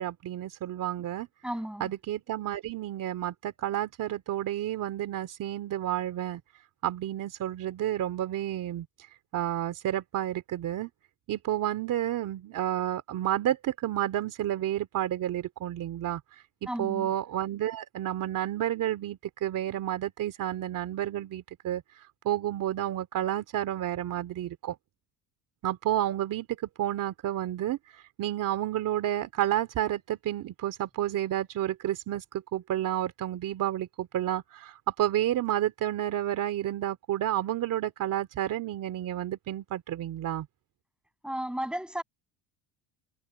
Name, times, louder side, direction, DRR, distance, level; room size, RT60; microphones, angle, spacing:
voice 1, 0.0-1.3 1.8-6.4 6.8-8.9 9.3-10.9 11.3-16.2 16.6-24.8 25.6-26.5 26.8-40.5, right 12 dB, 50° right, 2.8 m, -30 dB
voice 2, 1.4-1.9 16.7-17.1 41.2-42.0, right 1 dB, ahead, 6.5 m, -34 dB
cardioid pair, 135°, 42 cm